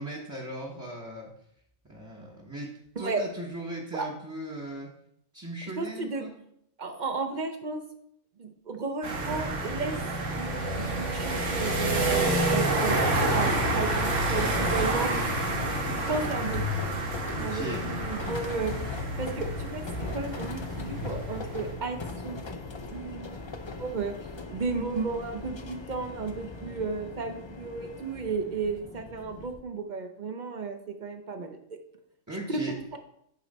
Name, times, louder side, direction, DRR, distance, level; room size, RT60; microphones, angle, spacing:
voice 1, 0.0-1.3 1.8-4.9 5.3-6.3 17.3-17.9 32.3-32.8, right 1 dB, 15° right, -2 dB, 0.8 m, -38 dB
voice 2, 5.8-6.3 6.8-7.8 8.4-10.0 10.3-13.0 13.3-15.1 16.1-16.6 17.4-18.7 19.2-22.5 22.9-23.4 23.8-24.2 24.5-31.6 32.5-32.6, right 4 dB, 45° right, 6 dB, 0.7 m, -33 dB
sound 1, 9.0-21.7, right 2 dB, 75° right, 1.6 m, -29 dB
sound 2, 11.9-29.6, left 3 dB, 50° left, 0.3 m, -39 dB
9.3 x 3.1 x 5.3 m, 0.73 s
omnidirectional pair, 1.3 m